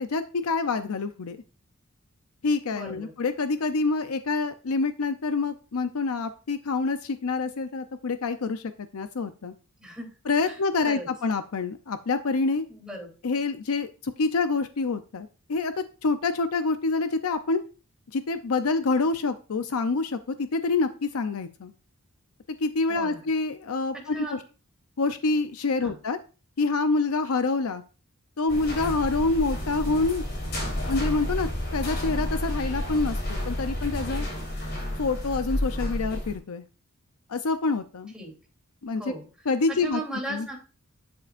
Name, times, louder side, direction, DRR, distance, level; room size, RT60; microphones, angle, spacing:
voice 1, 0.0-1.4 2.4-9.5 10.3-12.6 13.2-17.6 18.1-21.7 22.6-24.4 25.0-26.2 26.6-27.8 28.4-30.3 30.9-34.3 35.0-36.6 37.3-38.1 38.8-39.0 39.5-40.0 40.3-40.5, left 3 dB, 85° left, 10 dB, 0.6 m, -27 dB
voice 2, 2.7-3.1 9.8-10.1 10.4-10.6 10.9-11.1 12.7-13.1 22.9-23.3 24.1-24.4 25.8-26.0 38.1-38.3 38.9-39.3 39.7-40.6, right 2 dB, 5° right, -1 dB, 3.1 m, -37 dB
sound 1, 28.5-36.4, left 1 dB, 55° left, 3.7 m, -30 dB
11.5 x 7.7 x 2.5 m, 0.34 s
head